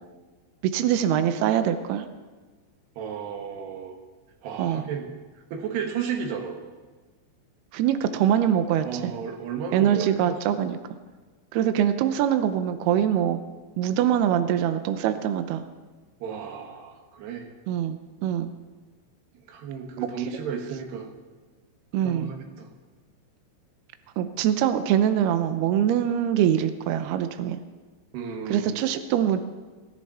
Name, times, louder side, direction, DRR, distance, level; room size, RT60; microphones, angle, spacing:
voice 1, 0.6-2.1 4.6-4.9 7.7-9.1 9.7-10.8 11.5-13.4 13.8-15.6 17.7-18.5 21.9-22.4 24.2-27.6 28.5-29.4, right 10 dB, 85° right, 9 dB, 2.2 m, -23 dB
voice 2, 3.0-4.0 4.4-5.1 5.5-6.6 8.8-10.4 16.2-17.5 19.5-21.1 22.0-22.8 28.1-28.9, right 7 dB, 65° right, 3 dB, 3.5 m, -33 dB
20.5 x 16.0 x 4.3 m, 1.4 s
omnidirectional pair, 5.7 m